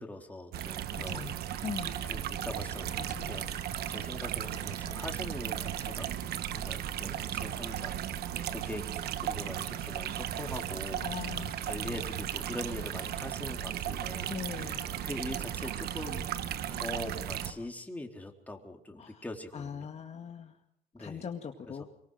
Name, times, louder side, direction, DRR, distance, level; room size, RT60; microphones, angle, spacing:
voice 1, 0.0-1.6 2.0-8.0 8.3-8.8 9.2-16.3 16.7-19.9 20.9-21.2 21.7-21.8, left 1 dB, 10° left, 2 dB, 3.9 m, -43 dB
sound 1, 0.5-17.5, right 11 dB, 70° right, 1.3 m, -36 dB
voice 2, 0.9-1.3 1.6-2.0 3.0-3.4 11.0-11.6 11.8-12.0 14.3-14.9 19.0-19.2 19.5-20.6 21.0-21.8, left 7 dB, 40° left, 3 dB, 2.1 m, -40 dB
sound 2, 1.1-3.2 3.5-4.2 4.5-5.2 5.5-6.2 7.0-7.2, right 6 dB, 45° right, 5.7 m, -56 dB
sound 3, 1.8-17.7, left 8 dB, 55° left, 2.8 m, -53 dB
24.5 x 23.0 x 6.6 m, 0.74 s
cardioid pair, 110°, 17 cm